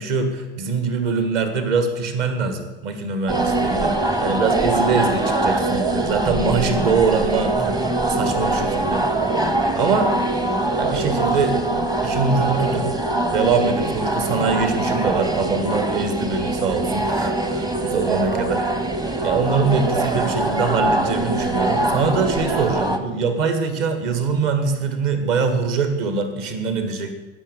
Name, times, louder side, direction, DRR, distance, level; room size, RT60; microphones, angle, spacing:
voice 1, 0.0-9.4 9.7-10.1 10.7-11.6 12.0-12.9 13.3-18.7 19.2-27.1, right 5 dB, 45° right, 8 dB, 1.8 m, -23 dB
sound 1, 3.3-23.0, right 2 dB, 10° right, 0.9 m, -22 dB
16.5 x 6.5 x 6.9 m, 1.1 s
figure-of-eight pair, 90°, 33 cm